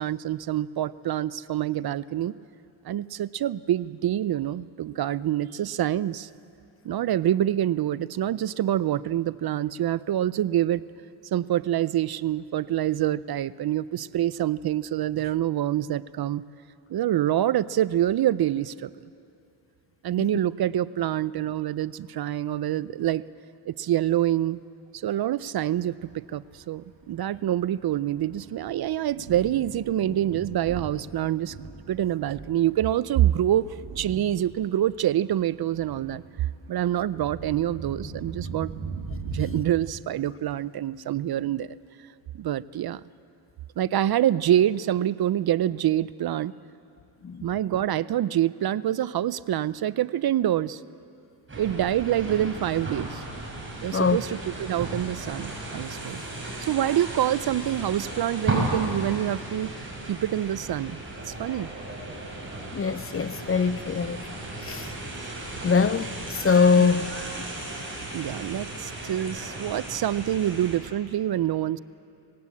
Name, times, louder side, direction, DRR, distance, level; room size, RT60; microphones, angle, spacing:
voice 1, 0.0-2.3 2.8-6.3 6.8-10.8 11.3-16.4 16.9-18.9 20.0-23.2 23.7-24.6 24.9-31.5 31.9-38.9 39.2-41.8 42.3-43.0 43.8-46.5 47.4-50.8 51.6-53.2 53.8-56.2 56.6-59.7 60.1-61.0 61.3-61.7 66.8-66.9 68.1-71.8, right 12 dB, 55° right, 0.5 m, -26 dB
Thunder, 26.2-39.8, right 4 dB, 85° right, 2.4 m, -40 dB
sound 1, 51.5-70.8, right 2 dB, 25° right, 6.3 m, -35 dB
voice 2, 62.7-64.2 64.6-64.9 65.6-67.1, left 5 dB, 30° left, 0.5 m, -22 dB
20.0 x 17.0 x 8.4 m
cardioid pair, 100°, 45 cm